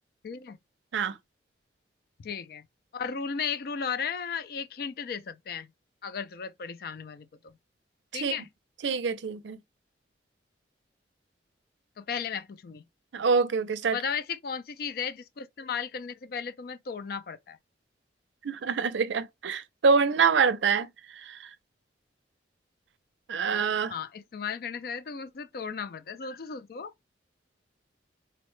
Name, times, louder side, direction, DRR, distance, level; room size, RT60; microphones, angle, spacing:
voice 1, 0.2-0.6 2.2-2.6 2.9-5.7 6.0-7.5 8.1-8.5 12.0-12.8 13.9-17.6 23.9-26.9, left 6 dB, 55° left, 0.4 m, -35 dB
voice 2, 8.8-9.6 13.1-14.0 18.4-20.9 21.2-21.5 23.3-23.9, right 5 dB, 85° right, 0.5 m, -25 dB
4.0 x 2.1 x 3.0 m
head